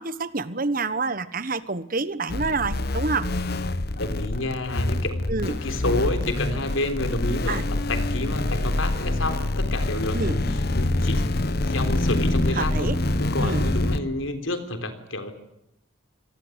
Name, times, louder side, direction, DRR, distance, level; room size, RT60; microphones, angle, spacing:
voice 1, 0.0-3.3 5.3-5.6 7.5-7.6 10.1-10.4 12.5-12.9 13.4-13.6, right 3 dB, 45° right, 15 dB, 1.2 m, -27 dB
sound 1, 2.3-14.0, left 2 dB, 50° left, 1.1 m, -26 dB
voice 2, 4.0-5.2 5.5-11.3 11.6-12.9 13.2-15.3, left 2 dB, 80° left, 8 dB, 3.8 m, -29 dB
26.0 x 19.5 x 8.1 m, 0.84 s
head